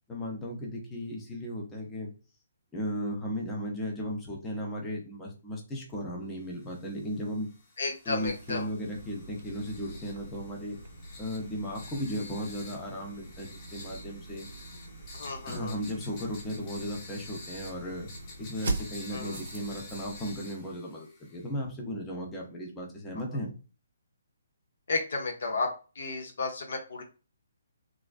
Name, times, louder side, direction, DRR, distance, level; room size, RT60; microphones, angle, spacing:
voice 1, 0.1-2.1 2.7-7.5 8.1-10.8 11.2-14.5 15.4-18.1 18.4-23.5, equal, 15° left, -1 dB, 0.6 m, -36 dB
sound 1, 6.6-21.5, left 2 dB, 35° left, 0.9 m, -50 dB
voice 2, 7.8-8.7 15.1-15.7 19.1-19.4 24.9-27.0, left 3 dB, 60° left, 2 dB, 0.6 m, -33 dB
sound 2, 8.3-20.0, right 3 dB, 60° right, 0.6 m, -43 dB
sound 3, 8.9-20.4, right 1 dB, 90° left, 1.1 m, -49 dB
2.4 x 2.1 x 2.4 m, 0.33 s
figure-of-eight pair, 135°, 0 cm